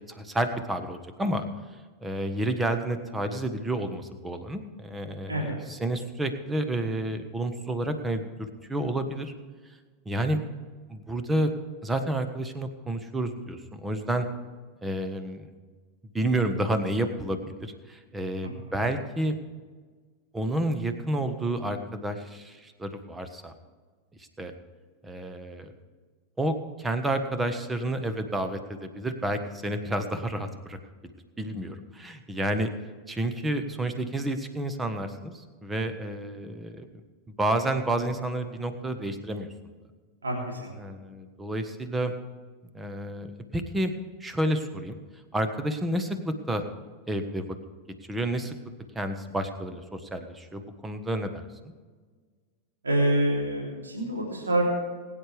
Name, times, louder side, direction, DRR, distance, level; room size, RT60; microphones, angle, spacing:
voice 1, 0.1-1.5 2.0-9.3 10.0-10.4 10.9-11.5 11.8-14.3 14.8-15.5 16.1-19.3 20.3-23.5 24.2-24.5 25.0-25.7 26.4-30.8 31.4-32.7 33.1-36.9 37.4-39.5 40.8-42.1 42.7-43.9 44.2-45.0 45.3-46.6 47.1-47.5 48.1-48.5 48.9-51.7, right 1 dB, 10° right, 8 dB, 1.3 m, -30 dB
voice 2, 18.4-18.8 40.2-40.7 52.8-54.6, right 1 dB, 75° right, -2 dB, 3.3 m, -27 dB
21.5 x 9.6 x 3.5 m, 1.5 s
figure-of-eight pair, 90°, 0 cm